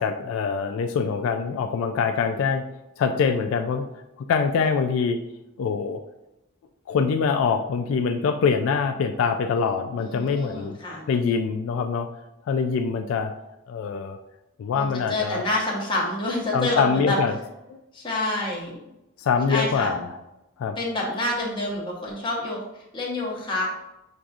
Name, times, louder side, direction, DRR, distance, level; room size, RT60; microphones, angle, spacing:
voice 1, 0.0-2.6 3.0-3.8 4.2-5.2 5.6-6.0 6.9-10.8 11.1-12.1 12.5-13.3 13.7-14.2 14.6-15.4 16.5-17.3 17.7-17.8 19.2-20.0 20.6-20.8, left 5 dB, 80° left, 6 dB, 0.3 m, -24 dB
voice 2, 10.0-11.1 14.7-17.2 17.9-18.8 19.5-20.0 20.8-23.8, left 2 dB, 25° left, -4 dB, 0.9 m, -28 dB
6.1 x 2.6 x 2.3 m, 0.91 s
head